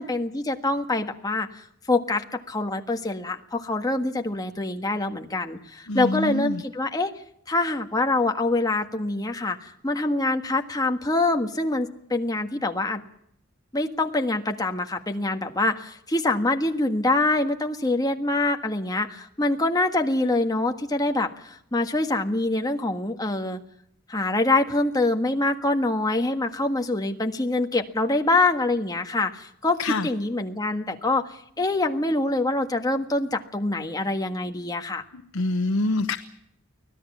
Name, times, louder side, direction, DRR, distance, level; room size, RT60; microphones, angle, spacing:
voice 1, 0.0-1.6 1.9-7.1 7.5-13.0 13.7-23.6 24.1-35.0, left 2 dB, 15° left, 4 dB, 1.5 m, -25 dB
voice 2, 5.9-6.6 29.8-30.1 35.1-36.2, left 2 dB, 70° left, 7 dB, 1.0 m, -26 dB
24.5 x 17.0 x 7.2 m, 0.74 s
head